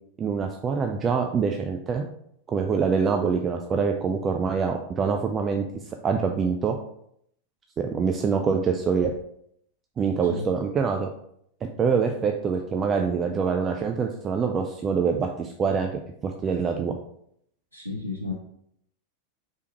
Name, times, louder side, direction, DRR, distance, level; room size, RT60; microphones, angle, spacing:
voice 1, 0.2-2.1 2.5-5.6 6.0-6.8 7.8-9.1 10.0-11.1 11.8-15.9 16.2-16.9, right 5 dB, 25° right, 4 dB, 0.3 m, -25 dB
voice 2, 17.7-18.3, left 3 dB, 90° left, -1 dB, 0.5 m, -32 dB
4.6 x 3.4 x 2.9 m, 0.71 s
figure-of-eight pair, 90°, 0 cm